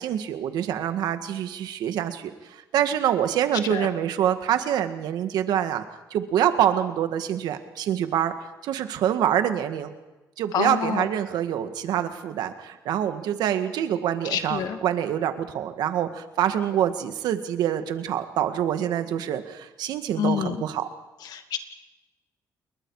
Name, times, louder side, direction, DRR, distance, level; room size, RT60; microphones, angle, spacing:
voice 1, 0.0-5.8 6.1-8.3 8.6-9.9 10.4-20.8, right 10 dB, 85° right, 8 dB, 1.8 m, -26 dB
voice 2, 10.5-11.1 14.3-14.8 20.2-20.6 21.3-21.6, left 8 dB, 75° left, 7 dB, 2.2 m, -27 dB
29.0 x 22.0 x 4.9 m, 1.1 s
cardioid pair, 100°, 7 cm